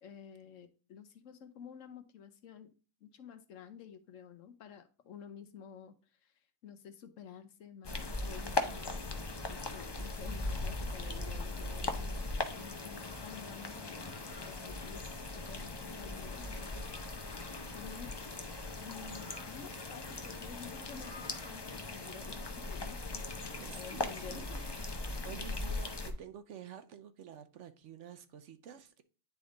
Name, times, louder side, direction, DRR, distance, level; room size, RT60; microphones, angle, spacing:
voice 1, 0.0-2.7 3.0-12.3 12.5-15.0 15.3-17.2 17.7-18.1 18.8-24.6 25.2-25.4, left 7 dB, 70° left, 1.1 m, -51 dB
sound 1, 7.8-26.1, left 2 dB, 30° left, 0.5 m, -39 dB
voice 2, 23.5-24.8 25.2-29.0, right 8 dB, 65° right, 0.9 m, -50 dB
9.7 x 3.5 x 3.7 m
omnidirectional pair, 1.4 m